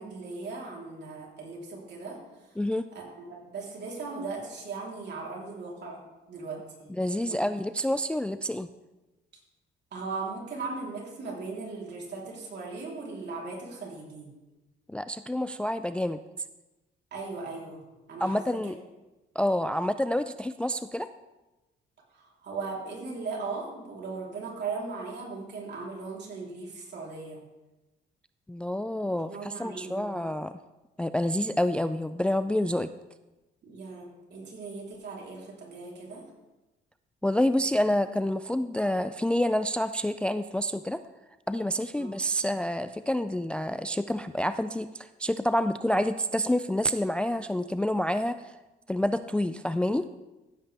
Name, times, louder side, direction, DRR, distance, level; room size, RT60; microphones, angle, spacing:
voice 1, 0.0-2.5 2.9-6.0 6.3-6.9 7.3-7.4 9.9-14.3 17.1-17.8 18.1-18.7 22.1-27.4 29.3-30.2 33.6-36.2 42.0-42.2, right 4 dB, 60° right, -3 dB, 3.5 m, -38 dB
voice 2, 2.6-2.9 7.0-8.7 14.9-16.2 18.2-18.8 19.4-21.1 28.5-30.6 31.0-32.9 37.2-41.0 41.5-48.5 48.9-50.1, left 1 dB, 5° left, 11 dB, 0.3 m, -28 dB
15.0 x 8.1 x 3.4 m, 1.1 s
cardioid pair, 90°, 20 cm